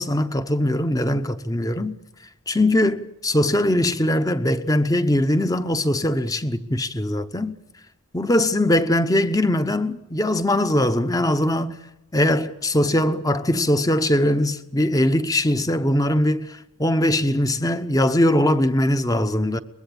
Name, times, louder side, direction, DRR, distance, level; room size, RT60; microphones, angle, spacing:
voice 1, 0.0-2.0 2.5-7.6 8.1-11.8 12.1-19.6, left 1 dB, 15° left, 0.9 m, -21 dB
24.0 x 21.0 x 8.7 m
head